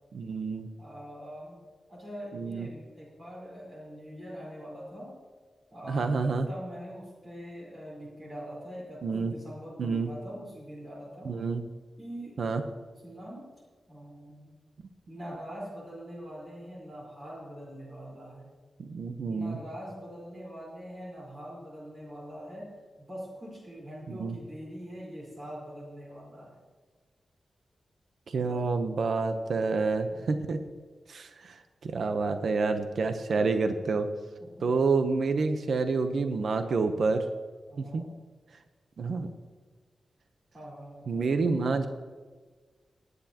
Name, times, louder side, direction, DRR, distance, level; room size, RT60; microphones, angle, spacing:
voice 1, 0.1-0.7 2.3-2.7 5.9-6.5 9.0-9.3 9.8-10.1 11.2-11.6 12.4-12.6 18.8-19.6 24.1-24.3 28.3-30.6 31.1-34.1 34.6-37.2 37.9-38.0 39.0-39.3 41.1-41.9, right 4 dB, 65° right, 7 dB, 0.8 m, -28 dB
voice 2, 0.8-1.6 1.9-5.1 5.7-6.1 6.5-11.3 12.0-12.4 13.0-13.5 13.9-14.6 15.1-18.5 19.2-26.6 28.3-28.7 30.1-30.4 34.4-34.7 37.7-38.1 40.5-41.4, equal, 35° right, -4 dB, 4.2 m, -43 dB
19.5 x 9.6 x 2.9 m, 1.4 s
wide cardioid pair, 160°, 0 cm